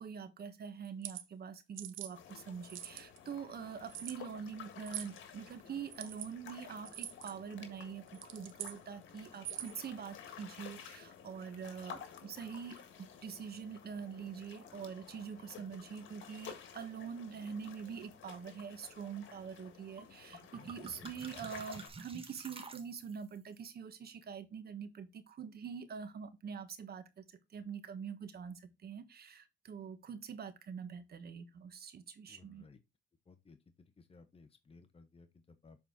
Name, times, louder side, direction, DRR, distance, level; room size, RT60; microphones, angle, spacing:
voice 1, 0.0-32.6, right 7 dB, 50° right, 1.3 m, -45 dB
sound 1, 0.8-1.2 1.8-2.1 2.6-3.2 3.9-4.2 4.9-5.1 5.9-6.3 6.9-7.3 8.1-8.8 9.3-9.8, right 12 dB, 85° right, 0.9 m, -44 dB
sound 2, 2.1-21.9, left 8 dB, 80° left, 1.7 m, -53 dB
sound 3, 20.0-20.1 20.3-23.4, right 4 dB, 30° right, 1.4 m, -50 dB
voice 2, 20.8-21.1 32.3-32.8 33.2-35.8, left 3 dB, 30° left, 1.2 m, -59 dB
7.2 x 4.3 x 3.8 m
cardioid pair, 90°, 20 cm